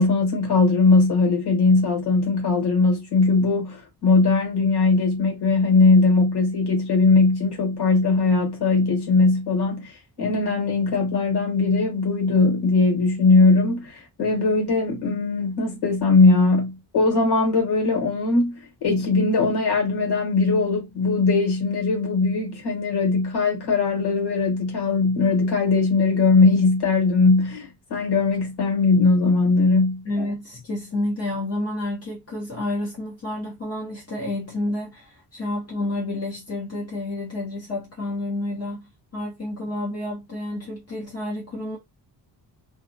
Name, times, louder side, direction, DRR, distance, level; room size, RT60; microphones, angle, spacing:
voice 1, 0.0-30.0, left 3 dB, 65° left, 1.4 m, -20 dB
voice 2, 30.0-41.8, left 1 dB, 35° left, 0.9 m, -30 dB
2.4 x 2.1 x 2.7 m
wide cardioid pair, 175°, 42 cm